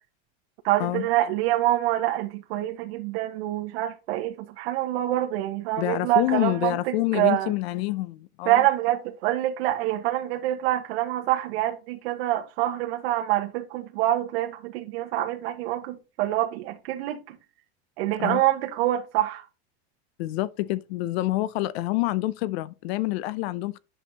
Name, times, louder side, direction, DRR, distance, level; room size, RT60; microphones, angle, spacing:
voice 1, 0.6-7.5 8.4-17.4 18.0-19.5, right 14 dB, 70° right, 1.3 m, -26 dB
voice 2, 5.8-8.6 18.2-18.4 20.2-23.8, left 17 dB, 70° left, 0.7 m, -27 dB
11.0 x 6.5 x 2.9 m
supercardioid pair, 165°, 32 cm